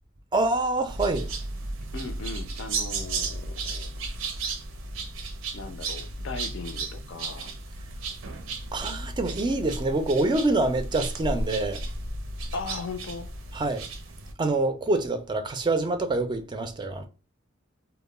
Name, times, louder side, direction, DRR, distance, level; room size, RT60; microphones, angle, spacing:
voice 1, 0.3-1.3 8.7-11.8 13.5-13.8 14.4-17.1, right 2 dB, 25° right, 0.3 m, -26 dB
sound 1, 0.9-14.3, right 3 dB, 85° right, 0.5 m, -34 dB
voice 2, 1.9-3.9 5.5-7.5 12.5-13.3, left 4 dB, 65° left, 0.4 m, -38 dB
2.2 x 2.1 x 3.1 m
head